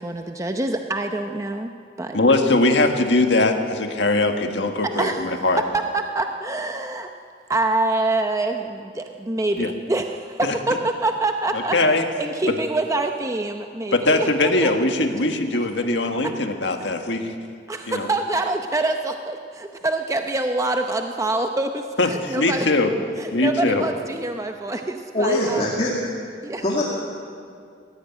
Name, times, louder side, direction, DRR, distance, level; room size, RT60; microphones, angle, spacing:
voice 1, 0.0-1.7 2.0-2.2 4.8-7.1 7.5-11.8 12.2-14.3 14.6-14.7 16.8-16.9 17.7-22.7 23.2-25.7 26.4-26.6, right 2 dB, 20° right, 5 dB, 0.7 m, -25 dB
voice 2, 2.1-5.6 9.6-9.7 10.4-10.5 11.7-12.0 13.9-17.3 17.9-18.1 22.0-22.9 23.3-23.8, left 2 dB, 80° left, 5 dB, 1.7 m, -21 dB
voice 3, 25.1-25.9 26.6-26.8, left 1 dB, 35° left, -3 dB, 2.4 m, -22 dB
20.0 x 15.0 x 9.4 m, 2.3 s
head